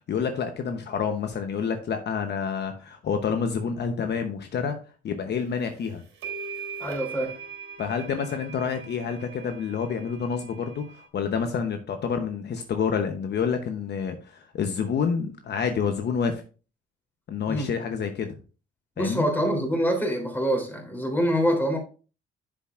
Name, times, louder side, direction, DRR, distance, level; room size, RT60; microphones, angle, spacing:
voice 1, 0.1-4.8 5.0-6.0 7.8-16.4 17.3-18.4 19.0-19.3, left 6 dB, 60° left, 6 dB, 1.0 m, -28 dB
sound 1, 5.6-5.7 6.2-11.1, right 5 dB, 75° right, 3.3 m, -40 dB
voice 2, 6.8-7.3 17.5-17.7 19.0-21.8, equal, 10° left, 2 dB, 3.4 m, -25 dB
9.1 x 7.3 x 2.5 m, 0.35 s
cardioid pair, 90°, 20 cm